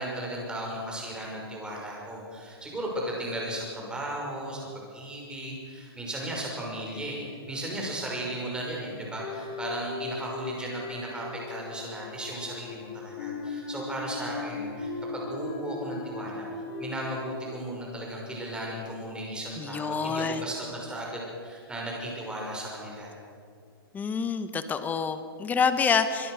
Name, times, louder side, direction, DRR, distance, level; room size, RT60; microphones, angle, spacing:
voice 1, 0.0-23.1, right 1 dB, 5° right, -2 dB, 6.1 m, -36 dB
sound 1, 9.2-18.4, left 3 dB, 45° left, 5.3 m, -38 dB
voice 2, 19.6-20.5 23.9-26.3, left 6 dB, 10° left, 10 dB, 1.2 m, -27 dB
23.0 x 22.5 x 6.5 m, 2.3 s
hypercardioid pair, 145°, 13 cm